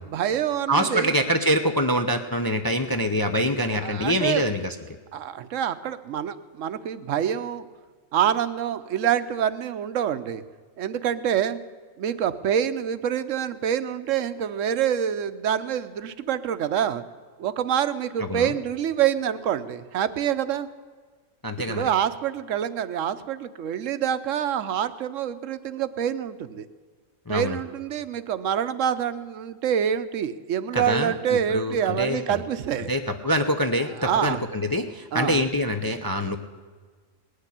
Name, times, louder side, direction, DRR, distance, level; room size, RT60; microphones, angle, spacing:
voice 1, 0.0-1.1 3.8-4.4 5.1-7.7 8.1-10.4 10.8-11.6 12.0-17.0 17.4-20.7 21.7-26.7 27.3-32.9 34.0-34.4 35.1-35.5, right 9 dB, 65° right, 12 dB, 1.0 m, -26 dB
voice 2, 0.7-4.7 18.3-18.5 21.4-21.8 27.3-27.6 30.7-31.1 31.5-32.4 32.9-36.4, equal, 25° left, 6 dB, 0.4 m, -25 dB
18.5 x 6.7 x 9.9 m, 1.5 s
omnidirectional pair, 1.5 m